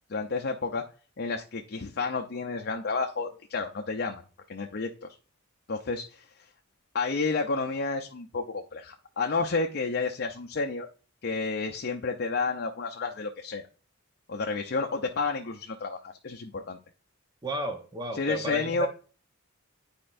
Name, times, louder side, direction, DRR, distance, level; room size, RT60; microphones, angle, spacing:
voice 1, 0.1-0.8 1.2-4.2 4.5-5.1 5.7-6.2 6.9-10.9 11.2-13.7 14.3-16.8 18.1-18.9, left 4 dB, 50° left, 3 dB, 0.6 m, -31 dB
voice 2, 17.4-18.9, right 1 dB, 20° right, 4 dB, 0.9 m, -32 dB
10.5 x 4.4 x 2.6 m, 0.39 s
head